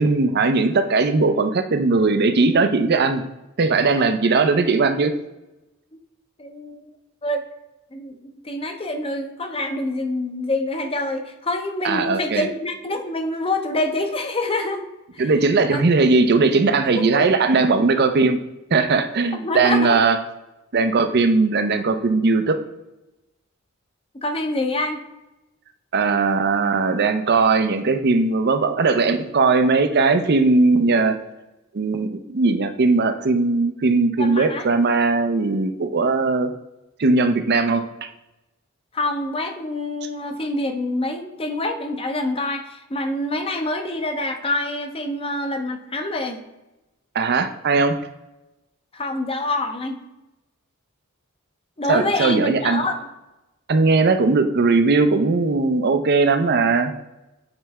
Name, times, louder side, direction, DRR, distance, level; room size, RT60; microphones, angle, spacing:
voice 1, 0.0-3.2 3.6-5.1 11.8-12.5 15.2-18.4 18.7-20.2 20.7-22.6 25.9-31.2 31.7-36.5 37.0-38.1 47.1-48.0 51.9-52.8 53.7-56.9, right 3 dB, 50° right, 9 dB, 0.6 m, -19 dB
voice 2, 6.4-6.9 7.2-7.4 7.9-14.8 15.1-15.2 15.7-15.8 17.0-17.3 19.3-20.0 24.1-25.0 34.2-34.7 38.9-46.4 48.9-50.0 51.8-53.1, left 2 dB, 25° left, 5 dB, 0.7 m, -26 dB
8.8 x 3.3 x 3.5 m, 0.97 s
head